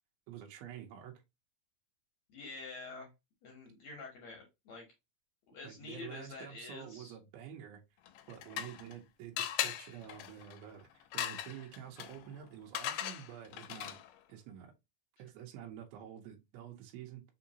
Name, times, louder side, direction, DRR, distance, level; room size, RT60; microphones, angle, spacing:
voice 1, 0.3-1.1 5.6-7.8 8.3-14.0 14.3-14.7 15.2-17.2, right 10 dB, 85° right, 2.6 m, -48 dB
voice 2, 2.3-3.1 3.4-4.9 5.5-7.2, left 3 dB, 70° left, 1.7 m, -47 dB
sound 1, 8.1-9.0 9.4-14.2, left 11 dB, 85° left, 2.4 m, -40 dB
5.7 x 2.7 x 2.8 m
omnidirectional pair, 4.3 m